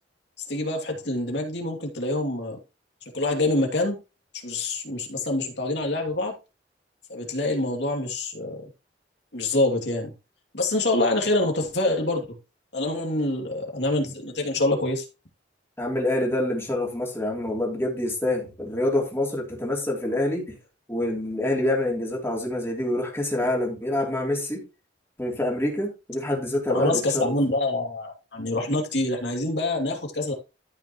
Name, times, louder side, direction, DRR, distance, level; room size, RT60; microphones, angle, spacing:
voice 1, 0.5-2.6 3.1-4.0 4.4-6.3 7.1-8.6 9.3-10.1 10.5-12.2 12.7-15.1 26.7-30.3, left 2 dB, 65° left, 2.7 m, -26 dB
voice 2, 15.8-20.6 20.9-24.6 25.2-27.3, left 1 dB, 15° left, 3.1 m, -26 dB
13.5 x 5.9 x 3.1 m
head